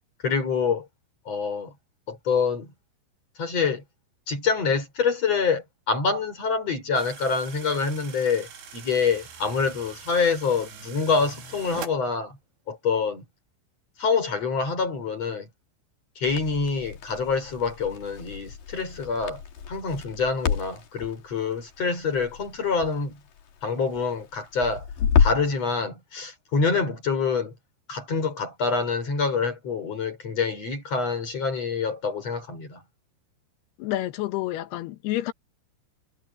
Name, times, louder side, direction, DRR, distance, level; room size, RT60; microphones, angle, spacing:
voice 1, 0.2-0.9 1.3-1.7 2.1-2.7 3.4-3.8 4.3-12.4 12.7-13.2 14.0-15.5 16.2-19.4 19.7-23.2 23.6-24.9 25.2-27.5 27.9-32.8, left 5 dB, 35° left, 6.4 m, -26 dB
sound 1, 6.9-11.9, right 6 dB, 85° right, 6.7 m, -43 dB
Crackle, 16.3-25.6, left 7 dB, 50° left, 3.8 m, -30 dB
voice 2, 33.8-35.3, left 15 dB, 70° left, 2.7 m, -29 dB
omnidirectional pair, 5.5 m